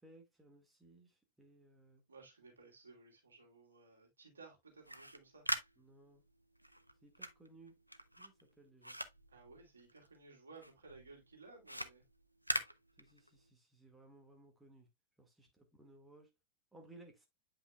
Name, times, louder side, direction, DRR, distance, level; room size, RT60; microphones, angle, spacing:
voice 1, 0.0-2.0 5.8-6.2 7.0-7.7 8.2-9.0 13.0-14.9 15.2-16.3 16.7-17.3, right 2 dB, 10° right, 1.8 m, -61 dB
voice 2, 2.1-5.4 9.3-12.0, right 3 dB, 75° right, 2.6 m, -58 dB
sound 1, 4.7-10.2 10.6-13.5, equal, 90° right, 0.5 m, -43 dB
8.7 x 5.4 x 2.2 m
figure-of-eight pair, 90°, 0 cm